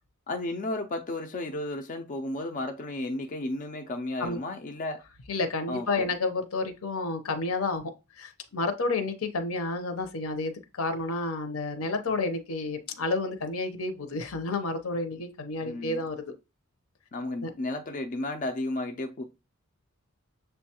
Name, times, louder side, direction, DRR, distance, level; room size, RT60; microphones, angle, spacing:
voice 1, 0.3-5.0 5.7-6.1 15.7-16.1 17.1-19.2, left 2 dB, 35° left, 0.4 m, -33 dB
voice 2, 5.3-16.3 17.4-17.5, left 3 dB, 80° left, 0.7 m, -30 dB
6.7 x 2.2 x 2.8 m
head